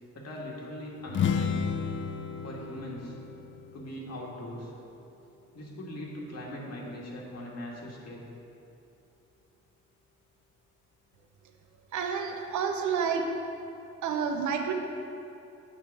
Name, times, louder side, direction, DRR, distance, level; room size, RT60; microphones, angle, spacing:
voice 1, 0.1-1.5 2.4-3.2 3.7-4.7 5.5-8.3, left 1 dB, 60° left, -2 dB, 1.7 m, -40 dB
sound 1, 1.1-4.8, left 6 dB, 40° left, 0.5 m, -32 dB
voice 2, 11.9-13.3 14.0-14.7, right 6 dB, 70° right, 4 dB, 0.8 m, -29 dB
7.6 x 6.0 x 4.7 m, 2.8 s
cardioid pair, 90°, 30 cm